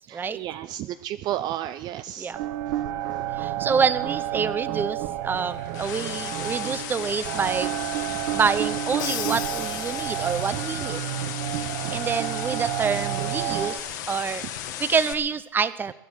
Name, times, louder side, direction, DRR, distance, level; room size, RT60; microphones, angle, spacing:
voice 1, 0.1-2.3 3.1-3.2 3.6-3.7 11.5-11.9, right 12 dB, 45° right, 13 dB, 0.5 m, -33 dB
sound 1, 2.3-13.8, right 12 dB, 60° right, 1.3 m, -30 dB
voice 2, 3.4-7.7 8.3-11.0 11.6-15.9, right 6 dB, 20° right, 15 dB, 0.8 m, -27 dB
sound 2, 5.3-15.1, left 11 dB, 75° left, 1.8 m, -35 dB
Crash cymbal, 9.0-10.7, left 12 dB, 45° left, 1.0 m, -35 dB
19.5 x 11.5 x 6.4 m, 0.85 s
supercardioid pair, 120°, 10 cm